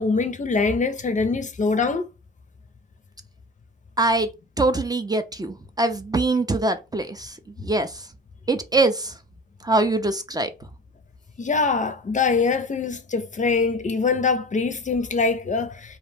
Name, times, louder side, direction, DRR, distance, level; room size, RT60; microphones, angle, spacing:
voice 1, 0.0-2.1 11.4-16.0, left 4 dB, 40° left, 0.5 m, -23 dB
voice 2, 4.0-4.3 4.6-7.3 7.6-7.9 8.5-9.1 9.6-10.5, right 2 dB, 20° right, 0.4 m, -23 dB
2.4 x 2.0 x 3.2 m
cardioid pair, 50°, 20 cm